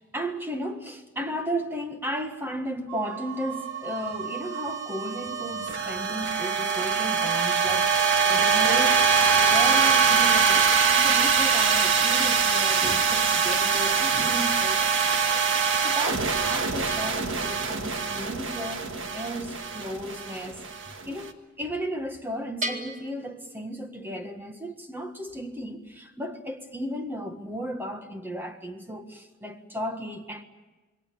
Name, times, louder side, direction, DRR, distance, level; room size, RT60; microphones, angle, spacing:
voice 1, 0.0-9.0 9.4-20.6 21.1-30.4, equal, 10° right, 1.5 m, -35 dB
sound 1, 2.9-21.2, right 5 dB, 60° right, 1.6 m, -24 dB
Bell, 22.6-24.3, right 1 dB, 35° right, 2.1 m, -36 dB
27.5 x 21.5 x 7.0 m
head